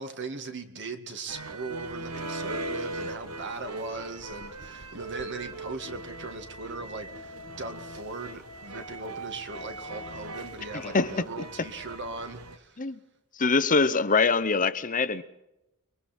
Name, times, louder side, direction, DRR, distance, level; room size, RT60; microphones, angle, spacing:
voice 1, 0.0-12.8, right 3 dB, 55° right, 2.1 m, -39 dB
sound 1, 1.3-12.6, right 2 dB, 75° right, 1.5 m, -39 dB
voice 2, 10.7-11.2 12.8-13.0 13.4-15.2, left 4 dB, 35° left, 0.9 m, -24 dB
29.0 x 22.5 x 4.5 m
head